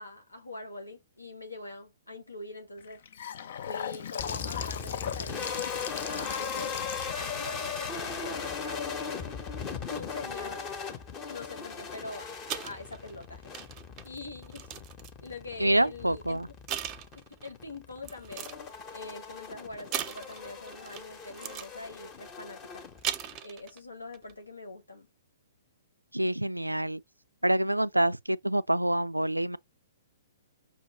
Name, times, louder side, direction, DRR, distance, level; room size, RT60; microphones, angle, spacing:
voice 1, 0.0-3.0 3.6-5.6 6.1-6.9 7.1-9.4 9.8-10.7 11.3-13.5 14.0-14.7 15.2-16.4 17.1-18.5 18.9-22.8 23.4-25.1, left 2 dB, 80° left, 1.5 m, -43 dB
Gurgling / Sink (filling or washing) / Bathtub (filling or washing), 2.8-8.9, left 8 dB, 55° left, 0.4 m, -39 dB
sound 1, 4.2-23.4, left 6 dB, 25° left, 0.9 m, -39 dB
sound 2, 12.4-15.3 16.1-16.3 16.7-17.5 18.0-18.7 19.9-21.1 21.3-21.7 22.8-23.8 24.1-24.3, right 10 dB, 25° right, 0.6 m, -38 dB
voice 2, 15.6-16.5 26.1-27.0 27.4-29.6, right 1 dB, 85° right, 0.3 m, -26 dB
5.5 x 2.8 x 3.0 m
figure-of-eight pair, 115°, 0 cm